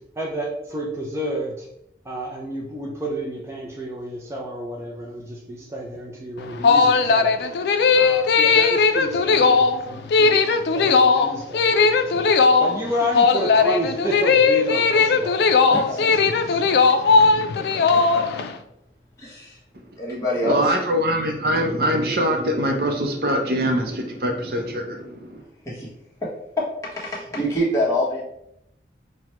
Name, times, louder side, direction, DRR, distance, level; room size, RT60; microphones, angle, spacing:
voice 1, 0.2-1.7 2.0-7.3 7.9-12.3 12.6-15.4 15.9-16.8 17.8-18.0, equal, 15° right, -3 dB, 0.4 m, -31 dB
sound 1, 6.4-18.5, left 4 dB, 70° left, 0.3 m, -18 dB
voice 2, 15.7-16.3 17.2-17.3 17.9-18.2 19.2-19.6 20.0-20.6 25.6-25.9 26.9-28.2, equal, 15° left, -7 dB, 1.1 m, -26 dB
voice 3, 20.4-25.4, equal, 55° right, 3 dB, 0.6 m, -23 dB
5.8 x 2.2 x 3.0 m, 0.79 s
head